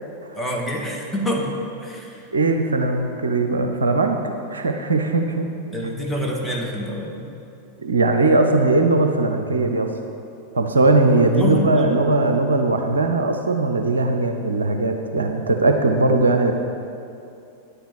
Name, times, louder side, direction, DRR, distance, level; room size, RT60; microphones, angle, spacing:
voice 1, 0.3-2.3 5.7-7.2 11.3-12.0, equal, ahead, -3 dB, 2.0 m, -26 dB
voice 2, 2.3-4.2 4.5-5.5 7.8-9.9 10.5-16.5, right 2 dB, 70° right, 5 dB, 0.7 m, -19 dB
9.8 x 7.1 x 7.4 m, 2.6 s
figure-of-eight pair, 90°, 0 cm